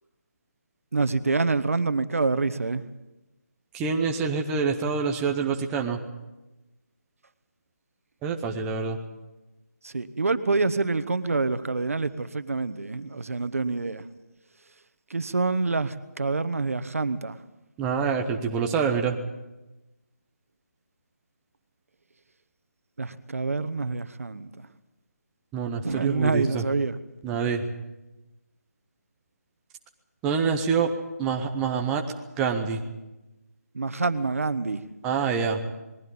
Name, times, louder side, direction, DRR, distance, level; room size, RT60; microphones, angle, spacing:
voice 1, 0.9-2.8 9.8-14.0 15.1-17.4 23.0-24.5 25.8-27.0 33.7-34.8, right 3 dB, 55° right, 13 dB, 1.3 m, -26 dB
voice 2, 3.7-6.0 8.2-9.0 17.8-19.2 25.5-26.6 27.2-27.6 30.2-30.9 31.2-32.0 32.4-32.8 35.0-35.6, right 6 dB, 5° right, 3 dB, 0.7 m, -26 dB
21.0 x 15.5 x 8.7 m, 1.0 s
figure-of-eight pair, 170°, 9 cm